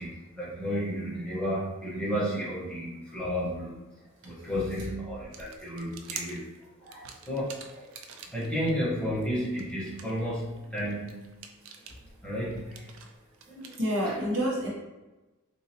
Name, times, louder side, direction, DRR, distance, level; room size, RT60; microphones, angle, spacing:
voice 1, 0.0-3.8 4.2-7.9 8.3-11.2 12.2-12.9 13.5-13.7, equal, 5° left, -9 dB, 1.1 m, -32 dB
sound 1, 5.1-8.7 9.2-13.8, right 6 dB, 75° right, 0.4 m, -46 dB
voice 2, 13.8-14.7, equal, 60° right, -4 dB, 1.0 m, -28 dB
3.7 x 2.7 x 2.8 m, 1.1 s
head